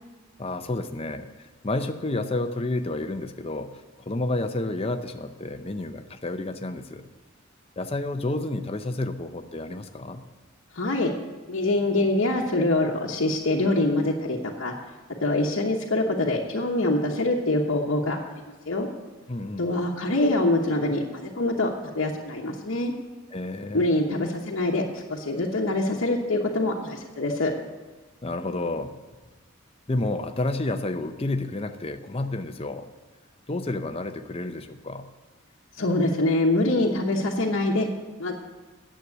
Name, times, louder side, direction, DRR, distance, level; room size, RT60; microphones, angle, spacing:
voice 1, 0.4-3.7 4.1-7.1 7.8-10.3 19.3-19.7 23.3-23.9 28.2-29.0 29.9-32.9 33.5-35.1, left 2 dB, 25° left, 8 dB, 0.6 m, -30 dB
voice 2, 10.7-11.1 11.5-14.7 15.2-18.2 18.7-18.9 19.6-22.9 23.7-27.5 35.7-37.9 38.2-38.3, left 2 dB, 70° left, -2 dB, 1.1 m, -24 dB
9.8 x 7.6 x 8.1 m, 1.2 s
head